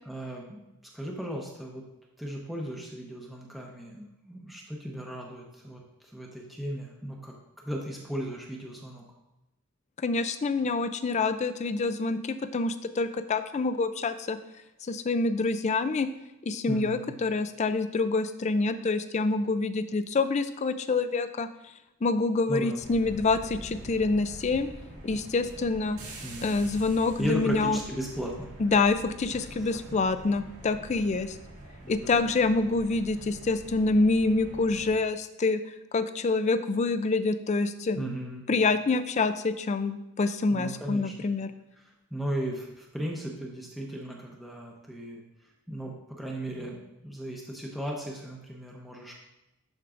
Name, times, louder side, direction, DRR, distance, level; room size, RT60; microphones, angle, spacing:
voice 1, 0.0-0.6 0.9-1.8 2.2-5.8 6.1-7.3 7.6-9.0 16.7-17.1 22.5-22.8 26.2-26.5 27.2-28.5 29.5-30.0 31.8-32.3 38.0-38.4 40.5-41.3 42.1-45.2 45.7-49.1, equal, ahead, -2 dB, 0.7 m, -36 dB
voice 2, 10.0-14.4 14.9-16.1 16.4-21.5 22.0-24.7 25.0-26.0 26.4-27.8 28.6-31.4 31.9-35.6 35.9-38.0 38.5-41.5, left 3 dB, 30° left, 11 dB, 0.3 m, -26 dB
sound 1, 22.8-34.9, right 1 dB, 75° right, 2.1 m, -45 dB
11.5 x 4.6 x 2.5 m, 0.95 s
head